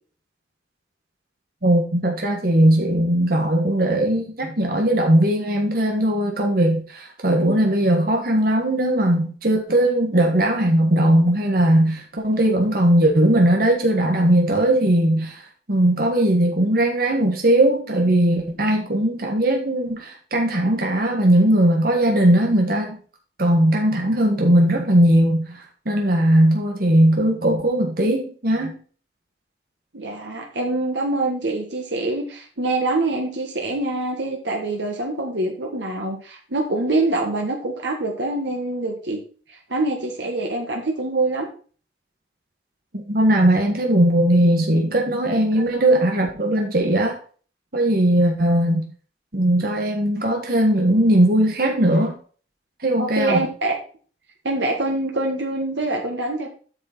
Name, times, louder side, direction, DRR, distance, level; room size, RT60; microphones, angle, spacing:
voice 1, 1.6-23.0 23.4-28.8 42.9-47.2 47.7-48.8 49.3-52.1 52.8-53.5, right 1 dB, 55° right, 1 dB, 1.6 m, -19 dB
voice 2, 29.9-39.2 39.5-41.5 45.5-45.9 53.0-53.7 54.4-56.5, right 2 dB, 90° right, 1 dB, 1.6 m, -25 dB
8.7 x 6.5 x 4.4 m, 0.41 s
head